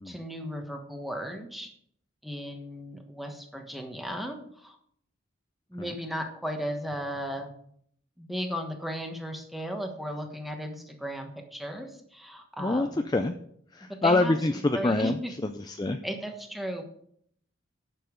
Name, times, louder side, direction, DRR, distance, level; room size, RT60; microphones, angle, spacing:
voice 1, 0.0-1.7 2.2-4.8 5.7-7.5 8.2-13.0 13.9-14.4 14.7-15.3 16.0-16.8, equal, ahead, 3 dB, 1.2 m, -35 dB
voice 2, 12.6-13.3 13.7-15.2 15.6-16.0, left 2 dB, 20° left, 7 dB, 0.4 m, -26 dB
10.0 x 6.8 x 5.1 m, 0.66 s
head